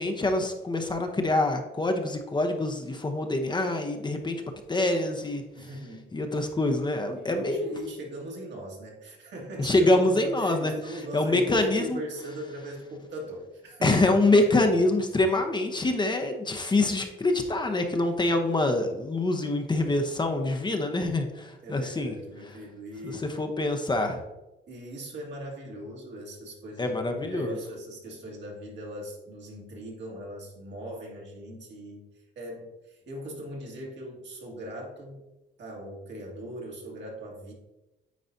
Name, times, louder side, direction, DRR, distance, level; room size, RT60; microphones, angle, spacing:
voice 1, 0.0-4.4 4.7-5.4 6.1-7.7 9.6-10.7 11.1-12.0 13.8-22.1 23.0-24.2 26.8-27.6, left 2 dB, 20° left, 5 dB, 0.8 m, -25 dB
voice 2, 5.5-6.1 7.1-14.0 14.4-14.7 21.6-23.3 24.7-32.1 32.4-35.3 35.6-37.5, right 1 dB, 65° right, -1 dB, 1.9 m, -40 dB
9.3 x 4.0 x 2.7 m, 1.0 s
cardioid pair, 90°, 20 cm